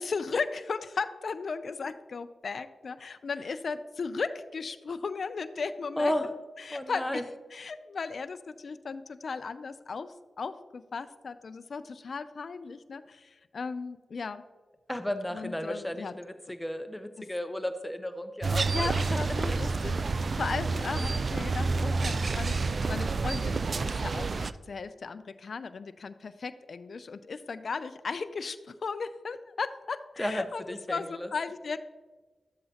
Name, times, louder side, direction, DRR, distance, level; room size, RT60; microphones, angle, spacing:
voice 1, 0.0-6.1 6.6-7.2 7.5-14.4 15.3-16.1 18.7-31.8, left 4 dB, 70° left, 12 dB, 0.4 m, -36 dB
voice 2, 6.0-6.3 6.7-7.3 14.9-19.2 19.5-19.6 30.2-31.3, left 1 dB, 10° left, 8 dB, 0.8 m, -33 dB
sound 1, 18.4-24.5, right 4 dB, 60° right, 0.3 m, -29 dB
12.0 x 7.7 x 2.9 m, 1.3 s
cardioid pair, 40°, 0 cm